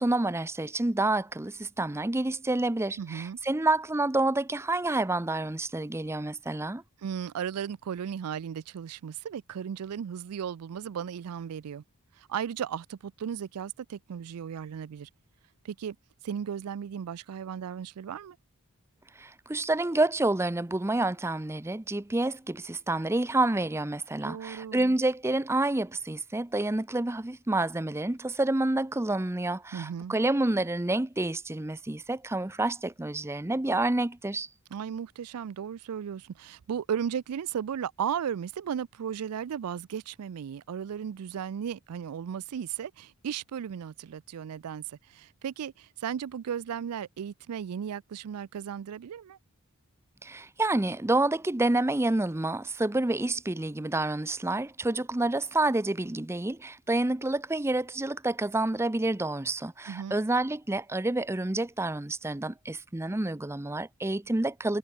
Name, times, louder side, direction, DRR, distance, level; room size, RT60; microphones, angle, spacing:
voice 1, 0.0-6.8 19.2-34.5 50.2-64.8, right 2 dB, 10° right, 0.5 m, -28 dB
voice 2, 3.0-3.4 7.0-11.8 12.2-15.1 15.6-16.0 16.2-18.4 24.2-25.0 29.7-30.2 34.7-49.4 59.9-60.2, right 8 dB, 90° right, 0.4 m, -35 dB
head